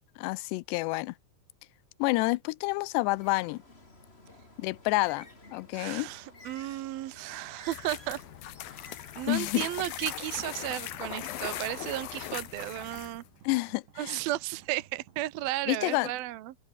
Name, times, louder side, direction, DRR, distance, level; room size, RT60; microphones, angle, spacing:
voice 1, 0.2-1.1 2.0-3.6 4.6-5.3 5.5-6.1 9.3-9.7 13.4-14.2 15.7-16.1, left 22 dB, 85° left, 2.8 m, -29 dB
Bird, 3.1-12.2, left 2 dB, 15° left, 3.5 m, -53 dB
voice 2, 5.7-8.2 8.7-8.9 9.2-13.2 14.0-16.6, right 16 dB, 70° right, 2.7 m, -34 dB
sound 1, 7.7-13.3, left 13 dB, 65° left, 2.9 m, -39 dB
sound 2, 10.3-15.5, right 9 dB, 90° right, 4.9 m, -56 dB
omnidirectional pair, 4.8 m